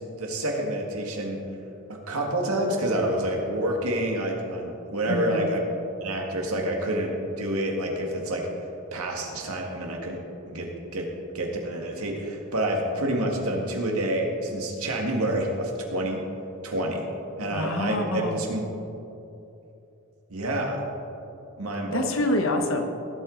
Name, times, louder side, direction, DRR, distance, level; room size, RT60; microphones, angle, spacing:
voice 1, 0.2-1.4 1.9-5.6 6.0-8.5 8.9-11.1 11.3-16.2 16.6-17.1 17.4-18.6 20.3-20.8 21.6-22.1, right 1 dB, 80° right, 1 dB, 1.9 m, -28 dB
voice 2, 5.0-5.5 17.5-18.4 21.9-22.8, left 1 dB, 65° left, 5 dB, 1.1 m, -26 dB
18.0 x 8.1 x 4.0 m, 2.9 s
head